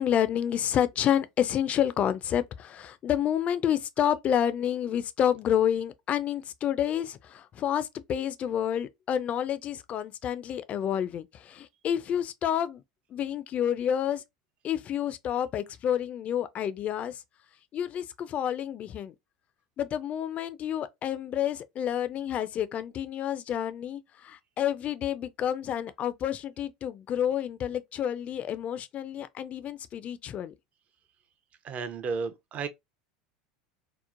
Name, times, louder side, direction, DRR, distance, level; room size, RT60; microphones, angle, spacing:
voice 1, 0.0-12.8 13.1-14.2 14.6-17.2 17.7-19.1 19.8-30.5, left 10 dB, 40° left, 0.4 m, -29 dB
voice 2, 31.6-32.7, right 5 dB, 40° right, 0.5 m, -33 dB
3.0 x 2.0 x 2.4 m
hypercardioid pair, 95°, 4 cm